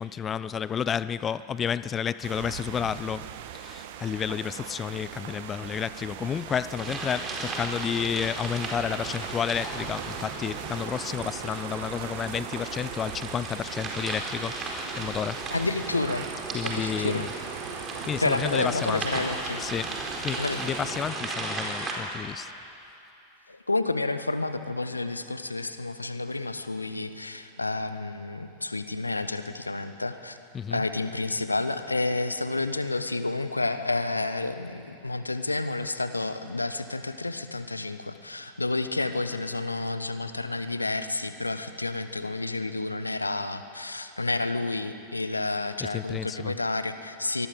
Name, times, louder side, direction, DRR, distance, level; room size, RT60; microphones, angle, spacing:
voice 1, 0.0-15.5 16.5-17.3 18.0-19.1 19.6-20.0 20.2-22.5 30.5-30.8 45.8-46.5, left 8 dB, 25° left, 0.4 m, -31 dB
sound 1, 2.2-21.1, right 10 dB, 50° right, 1.3 m, -41 dB
sound 2, 6.7-21.9, right 2 dB, 20° right, 4.5 m, -36 dB
voice 2, 15.5-16.3 16.6-17.3 18.2-19.6 20.4-20.6 23.5-30.4 30.7-47.5, left 2 dB, 80° left, 1.1 m, -30 dB
24.5 x 19.5 x 8.0 m
figure-of-eight pair, 90°, 0 cm